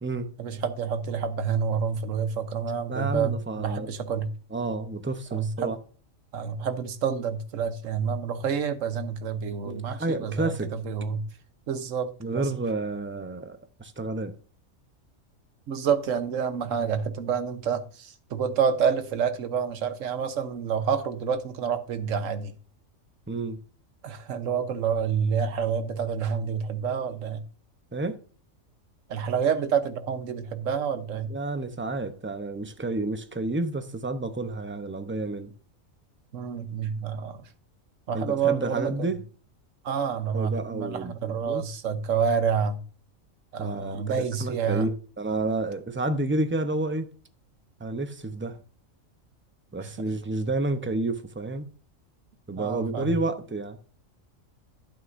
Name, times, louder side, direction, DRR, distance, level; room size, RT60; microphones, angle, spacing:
voice 1, 0.4-4.3 5.3-5.7 6.3-11.2 11.7-12.5 15.7-22.5 24.0-27.4 29.1-31.3 36.3-37.4 38.1-38.9 39.8-42.8 43.5-44.9 49.8-49.9 52.6-53.1, right 6 dB, 70° right, 1.3 m, -28 dB
voice 2, 2.9-3.9 4.5-5.8 9.6-10.7 12.2-14.3 23.3-23.6 27.9-28.2 31.3-35.5 38.1-39.2 40.3-41.6 43.6-47.1 47.8-48.6 49.7-51.7 52.5-53.8, right 2 dB, 15° right, 0.5 m, -30 dB
11.0 x 8.8 x 2.6 m
omnidirectional pair, 1.4 m